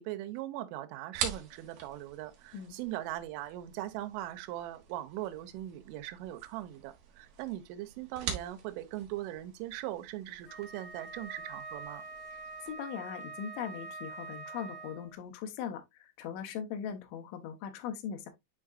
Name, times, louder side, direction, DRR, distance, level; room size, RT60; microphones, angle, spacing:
voice 1, 0.0-12.0, right 14 dB, 80° right, 3.2 m, -40 dB
sound 1, 1.1-12.7, right 7 dB, 60° right, 2.3 m, -45 dB
Wind instrument woodwind instrument, 10.4-15.1, right 3 dB, 60° left, 3.6 m, -45 dB
voice 2, 12.6-18.3, left 8 dB, 80° left, 3.3 m, -40 dB
10.0 x 3.8 x 2.4 m
omnidirectional pair, 5.6 m